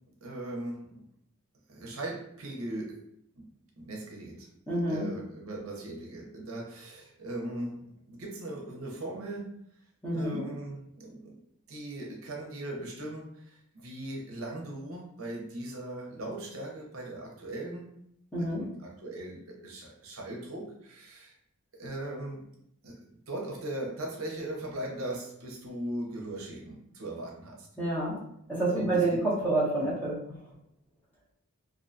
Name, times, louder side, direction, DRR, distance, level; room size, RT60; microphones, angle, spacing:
voice 1, 0.2-0.9 1.7-3.0 3.4-3.5 3.8-4.5 4.9-7.8 8.1-9.5 10.1-11.4 11.7-17.9 18.4-21.3 21.7-22.4 22.8-23.0 23.3-27.7 28.7-29.2, right 1 dB, 65° right, -1 dB, 0.6 m, -39 dB
voice 2, 4.7-5.1 10.0-10.4 18.3-18.6 27.8-28.2 28.5-30.2, right 2 dB, 5° left, -7 dB, 0.7 m, -28 dB
2.5 x 2.1 x 2.5 m, 0.73 s
head